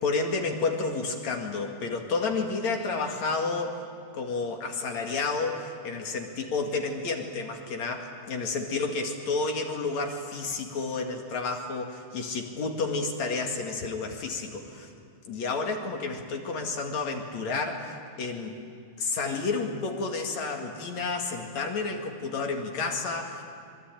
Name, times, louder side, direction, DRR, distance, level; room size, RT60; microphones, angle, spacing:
voice 1, 0.0-3.8 4.1-14.9 15.3-18.6 19.0-23.4, left 4 dB, 70° left, 2 dB, 3.4 m, -30 dB
25.5 x 24.0 x 9.0 m, 2.3 s
omnidirectional pair, 3.3 m